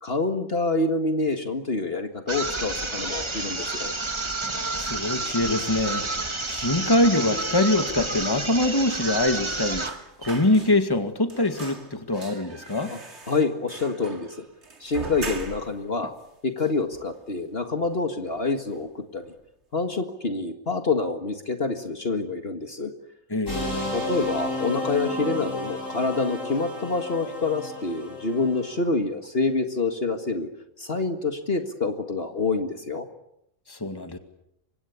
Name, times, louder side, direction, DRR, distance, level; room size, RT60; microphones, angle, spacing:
voice 1, 0.0-3.9 12.8-13.0 13.3-14.5 14.8-16.1 16.4-19.2 19.7-22.9 23.9-30.5 30.8-33.1, left 3 dB, 45° left, 6 dB, 2.1 m, -27 dB
sound 1, 2.3-10.0, right 2 dB, 20° right, 1.5 m, -30 dB
voice 2, 4.4-6.1 6.5-9.8 10.2-12.9 23.3-24.0 33.7-34.2, left 2 dB, 15° left, 7 dB, 2.1 m, -24 dB
sound 2, 9.8-11.0 11.3-15.8 16.2-16.3 16.6-17.4 17.7-17.9 18.2-18.9 19.2-19.4, right 3 dB, 55° right, 2.7 m, -41 dB
sound 3, 23.5-28.8, left 2 dB, 70° left, 8.6 m, -32 dB
28.5 x 25.0 x 7.1 m, 0.78 s
omnidirectional pair, 1.4 m